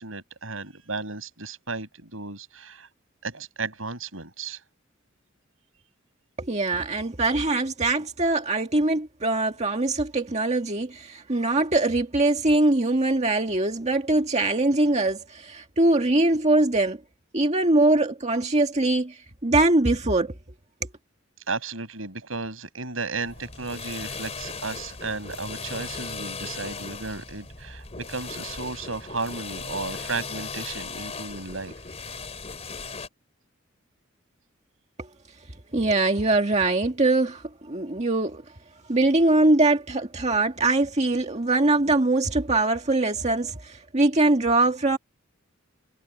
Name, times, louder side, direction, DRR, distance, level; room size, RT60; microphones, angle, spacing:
voice 1, 0.0-2.9 3.2-4.6 21.5-31.7, right 3 dB, 80° right, 7.1 m, -34 dB
voice 2, 6.4-17.0 17.3-20.3 35.7-38.4 38.9-45.0, right 2 dB, 35° right, 1.8 m, -22 dB
sound 1, 23.2-33.1, left 4 dB, 35° left, 3.3 m, -37 dB
head